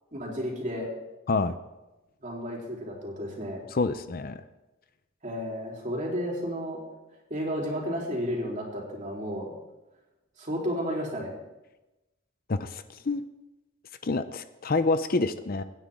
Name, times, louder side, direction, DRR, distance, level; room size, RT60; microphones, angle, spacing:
voice 1, 0.1-0.9 2.2-3.6 5.2-6.8 7.3-9.6 10.4-11.3, equal, 35° right, -2 dB, 3.6 m, -32 dB
voice 2, 3.7-4.4 12.5-13.2 14.0-15.6, left 3 dB, 45° left, 11 dB, 0.5 m, -27 dB
24.5 x 10.0 x 3.7 m, 1.0 s
head